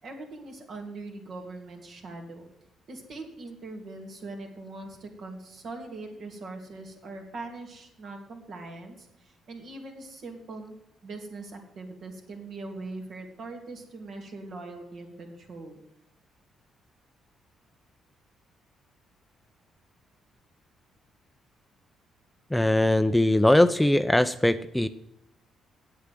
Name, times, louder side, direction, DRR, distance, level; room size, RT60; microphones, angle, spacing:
voice 1, 0.0-2.5 2.9-15.8, right 2 dB, 60° right, 3 dB, 2.8 m, -41 dB
voice 2, 22.5-24.9, left 1 dB, 5° left, 11 dB, 0.5 m, -21 dB
8.8 x 8.3 x 7.6 m, 0.80 s
cardioid pair, 90°, 0 cm